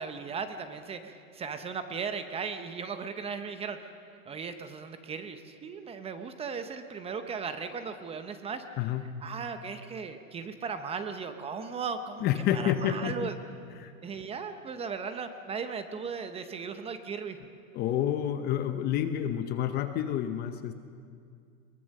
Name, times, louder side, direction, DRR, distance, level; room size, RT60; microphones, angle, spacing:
voice 1, 0.0-3.9 4.3-8.6 9.2-12.3 12.5-13.3 14.0-17.4, right 5 dB, 15° right, 9 dB, 0.7 m, -37 dB
voice 2, 8.8-9.1 12.2-13.3 13.7-13.9 17.7-20.7, left 10 dB, 25° left, 9 dB, 0.6 m, -29 dB
22.0 x 19.5 x 6.5 m, 2.3 s
supercardioid pair, 145°, 42 cm